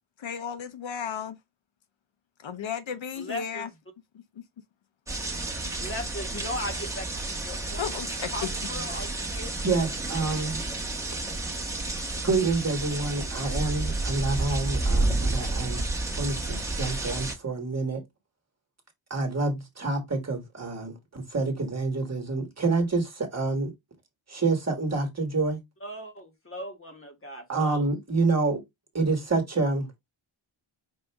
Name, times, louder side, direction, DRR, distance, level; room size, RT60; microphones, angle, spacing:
voice 1, 0.2-1.4 2.4-3.7 7.8-8.3, left 7 dB, 70° left, 0.7 m, -34 dB
voice 2, 3.2-3.7 5.8-7.9 8.3-9.7 25.8-27.9, left 1 dB, 25° left, 1.3 m, -38 dB
sound 1, 5.1-17.3, right 2 dB, 5° right, 1.0 m, -30 dB
voice 3, 9.6-10.6 12.2-15.8 16.2-18.0 19.1-23.7 24.3-25.6 27.5-28.6 28.9-29.9, right 3 dB, 30° right, 1.4 m, -27 dB
5.5 x 2.5 x 3.4 m
wide cardioid pair, 140°, 49 cm